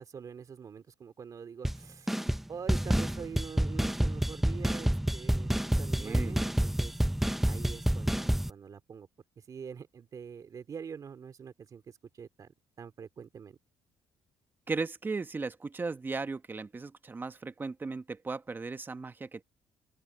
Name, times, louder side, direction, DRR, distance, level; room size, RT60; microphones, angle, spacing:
voice 1, 0.0-2.1 2.5-7.0 7.4-9.1 9.4-13.6, right 6 dB, 40° right, 2.5 m, -45 dB
sound 1, 1.6-1.8 2.1-2.4 2.7-8.5, right 1 dB, 5° right, 0.5 m, -28 dB
voice 2, 6.0-6.4 14.7-19.4, right 4 dB, 25° right, 1.2 m, -36 dB
open air
cardioid pair, 100°, 9 cm